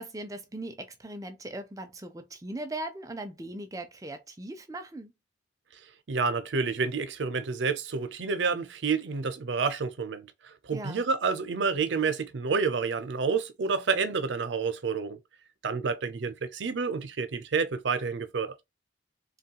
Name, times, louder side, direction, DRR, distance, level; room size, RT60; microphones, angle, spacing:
voice 1, 0.0-5.1 10.7-11.0, right 1 dB, 20° right, 0.4 m, -39 dB
voice 2, 6.1-15.2 15.6-18.6, right 5 dB, 75° right, 0.5 m, -29 dB
3.0 x 2.3 x 2.8 m
head